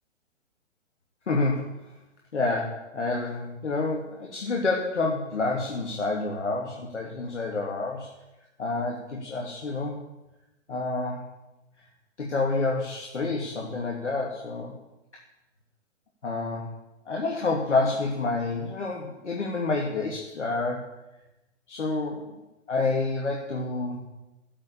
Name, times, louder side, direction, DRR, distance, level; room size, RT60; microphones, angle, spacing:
voice 1, 1.3-1.7 2.3-8.1 8.6-10.0 10.7-11.2 12.2-14.7 16.2-16.7 17.1-20.9 21.7-22.3 22.7-24.0, left 3 dB, 70° left, -1 dB, 2.8 m, -28 dB
14.0 x 7.8 x 8.8 m, 0.99 s
figure-of-eight pair, 125°, 37 cm